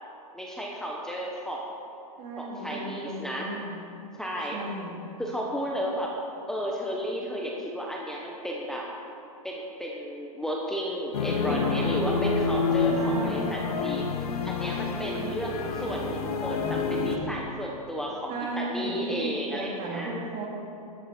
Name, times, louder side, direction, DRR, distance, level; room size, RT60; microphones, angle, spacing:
voice 1, 0.3-1.7 2.4-3.5 4.2-4.6 5.2-6.1 6.5-8.9 9.4-20.1, equal, 5° left, -2 dB, 1.3 m, -33 dB
voice 2, 2.2-3.8 4.5-5.1 11.5-12.2 12.9-13.5 15.1-15.7 18.3-20.5, right 2 dB, 40° right, -1 dB, 2.9 m, -35 dB
sound 1, 11.1-17.2, left 4 dB, 80° left, 1.4 m, -28 dB
12.5 x 12.0 x 4.6 m, 2.9 s
hypercardioid pair, 125°, 19 cm